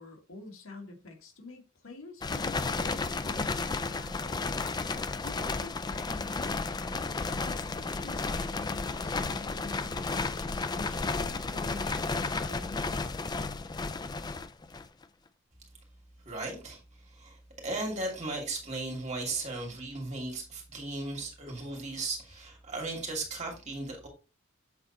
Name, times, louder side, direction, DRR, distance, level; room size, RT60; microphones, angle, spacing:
voice 1, 0.0-4.8 5.2-7.0 7.4-13.1, left 3 dB, 85° left, 1.8 m, -46 dB
sound 1, 2.2-15.0, left 3 dB, 20° left, 0.4 m, -33 dB
voice 2, 16.2-24.1, right 2 dB, 35° right, 2.6 m, -36 dB
7.8 x 4.0 x 4.1 m
head